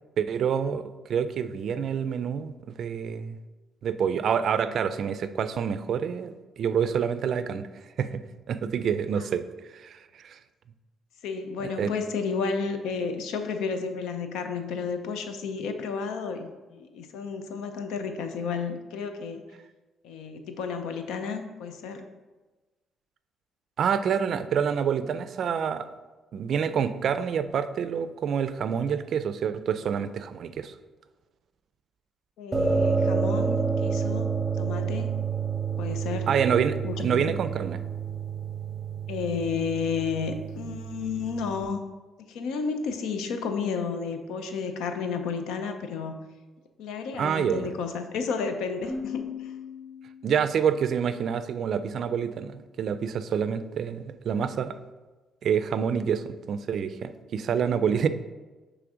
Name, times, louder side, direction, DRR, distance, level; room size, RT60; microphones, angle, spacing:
voice 1, 0.2-3.4 3.8-7.7 8.0-8.2 8.5-9.4 9.7-10.0 10.2-10.4 11.6-11.9 23.8-25.9 26.3-30.7 36.3-37.8 47.2-47.7 50.2-54.8 55.4-58.1, right 7 dB, 65° right, 12 dB, 0.3 m, -27 dB
voice 2, 11.2-19.4 20.0-22.0 32.4-34.3 34.6-35.1 35.8-36.3 36.8-37.3 39.1-41.8 42.3-46.2 46.8-49.5, left 5 dB, 90° left, 7 dB, 0.6 m, -32 dB
sound 1, 32.5-41.6, right 5 dB, 15° right, 0.9 m, -29 dB
Keyboard (musical), 48.8-50.7, left 5 dB, 15° left, 1.7 m, -38 dB
6.0 x 3.2 x 4.9 m, 1.2 s
cardioid pair, 90°, 0 cm